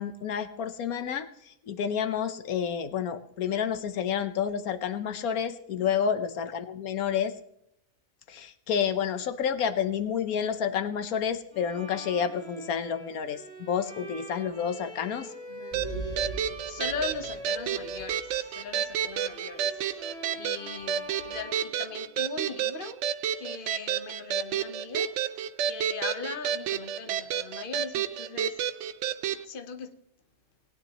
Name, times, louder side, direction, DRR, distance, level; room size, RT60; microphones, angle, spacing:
voice 1, 0.0-7.3 8.3-15.3, left 7 dB, 85° left, 1.3 m, -30 dB
Bowed string instrument, 11.5-22.5, right 1 dB, 60° left, 4.6 m, -45 dB
voice 2, 15.5-16.4 16.6-23.0 23.3-25.1 25.6-28.6 29.3-29.9, left 5 dB, 40° left, 1.1 m, -40 dB
sound 1, 15.7-18.4 18.8-19.0 20.1-20.2 20.8-20.9 21.2-21.3, right 3 dB, 25° left, 4.6 m, -40 dB
sound 2, 15.7-29.4, right 9 dB, 65° right, 0.8 m, -31 dB
19.0 x 9.7 x 3.0 m
omnidirectional pair, 1.5 m